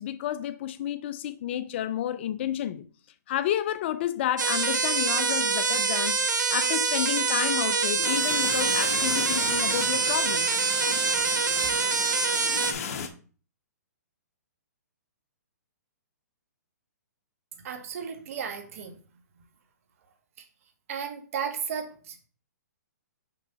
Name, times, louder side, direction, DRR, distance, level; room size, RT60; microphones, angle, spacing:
voice 1, 0.0-2.9 3.3-10.6, left 11 dB, 40° left, 0.5 m, -31 dB
sound 1, 4.4-12.7, right 5 dB, 90° right, 1.2 m, -25 dB
sound 2, 8.0-13.1, left 6 dB, 55° left, 1.1 m, -36 dB
voice 2, 17.6-19.0 20.9-22.3, right 7 dB, 50° right, 1.5 m, -34 dB
6.0 x 5.5 x 4.0 m
hypercardioid pair, 150°, 10 cm